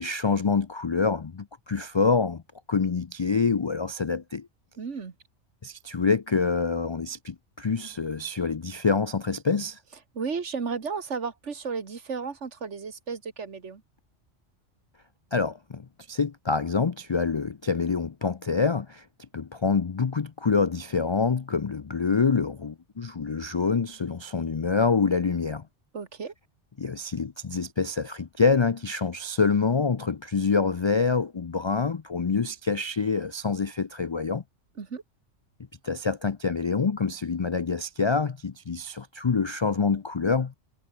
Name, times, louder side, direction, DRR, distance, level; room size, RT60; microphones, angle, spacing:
voice 1, 0.0-2.4 2.7-4.5 5.6-9.8 15.3-19.0 19.3-25.7 26.8-34.4 35.8-40.5, left 5 dB, 50° left, 0.3 m, -26 dB
voice 2, 4.8-5.1 10.1-13.8 25.9-26.3 34.8-35.0, right 5 dB, 70° right, 2.0 m, -33 dB
omnidirectional pair, 1.2 m